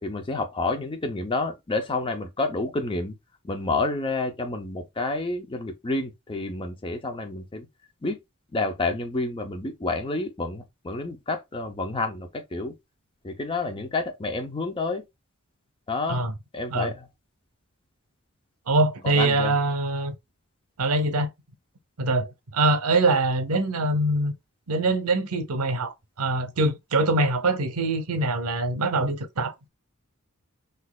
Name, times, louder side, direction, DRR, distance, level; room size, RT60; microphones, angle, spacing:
voice 1, 0.0-3.1 3.4-7.7 8.0-8.2 8.5-12.7 13.2-15.0 15.9-16.3 16.5-17.1 19.0-19.5, left 3 dB, 25° left, 0.5 m, -29 dB
voice 2, 18.7-20.1 20.8-21.3 22.0-22.3 22.5-24.3 24.7-29.5, right 2 dB, 80° right, 0.7 m, -23 dB
4.0 x 2.6 x 2.2 m
head